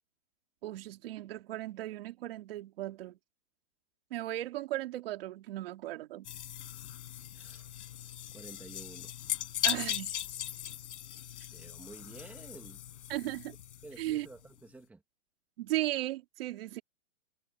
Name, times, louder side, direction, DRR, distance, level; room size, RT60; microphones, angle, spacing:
voice 1, 0.6-3.2 4.1-6.3 9.6-10.1 13.1-13.6 14.0-14.3 15.6-16.8, right 16 dB, 45° right, 2.9 m, -36 dB
sound 1, 6.2-14.4, left 12 dB, 55° left, 7.4 m, -39 dB
voice 2, 7.3-7.7 8.3-9.1 11.5-12.8 13.8-15.0, right 3 dB, 5° right, 2.0 m, -50 dB
hypercardioid pair, 165°, 41 cm